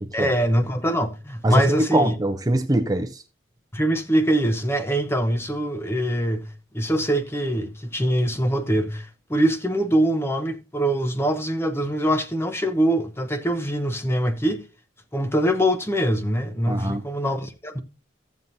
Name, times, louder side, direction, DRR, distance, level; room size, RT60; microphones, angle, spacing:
voice 1, 0.1-2.1 3.7-6.5 6.7-14.6 15.1-17.8, right 1 dB, 15° left, 0.8 m, -23 dB
voice 2, 1.4-3.2 16.7-17.0, right 1 dB, 20° right, 0.6 m, -23 dB
15.0 x 7.3 x 2.7 m
head